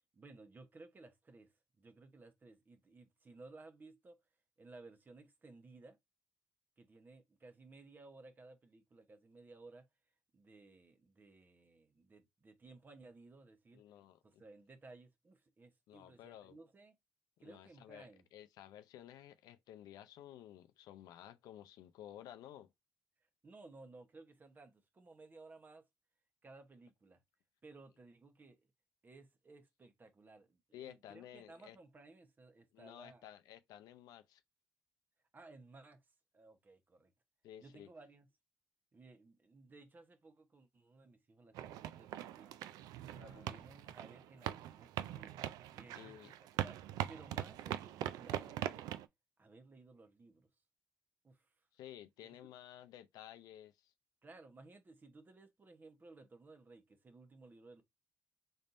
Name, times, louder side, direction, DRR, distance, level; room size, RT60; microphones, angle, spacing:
voice 1, 0.1-4.2 4.6-6.0 6.8-9.9 10.3-13.8 14.2-16.9 17.4-18.3 23.4-25.8 26.4-27.2 27.6-28.6 29.0-33.2 35.3-36.0 36.3-37.1 37.6-38.3 38.9-42.7 43.1-46.8 47.1-48.9 49.4-50.5 51.2-51.7 52.2-52.4 54.2-57.8, right 3 dB, 30° right, 0.9 m, -58 dB
voice 2, 13.7-14.4 15.9-16.6 17.4-22.7 30.7-31.8 32.7-34.4 37.4-37.9 43.1-43.6 45.9-46.3 51.7-53.9, left 11 dB, 85° left, 0.5 m, -54 dB
sound 1, 41.5-49.0, right 12 dB, 90° right, 0.3 m, -42 dB
4.1 x 3.4 x 2.6 m
cardioid pair, 100°, 6 cm